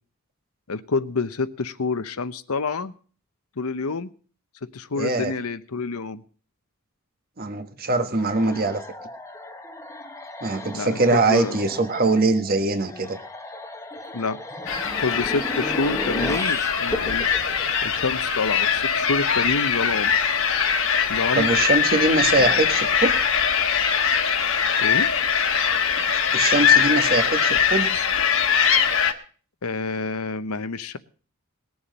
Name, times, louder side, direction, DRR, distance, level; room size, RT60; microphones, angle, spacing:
voice 1, 0.7-2.9 3.6-4.1 4.6-6.2 10.7-11.6 14.1-14.4 15.0-17.3 17.8-20.1 21.1-21.5 22.3-22.5 24.8-25.1 29.6-31.0, left 4 dB, 90° left, 12 dB, 0.8 m, -28 dB
voice 2, 5.0-5.3 7.4-8.8 10.4-13.2 21.3-23.1 26.3-27.9, right 3 dB, 45° right, 7 dB, 1.3 m, -22 dB
sound 1, 8.2-18.4, left 1 dB, 15° left, 0.9 m, -34 dB
sound 2, 14.7-29.1, left 7 dB, 65° left, 1.2 m, -22 dB
20.5 x 7.2 x 5.3 m, 0.43 s
head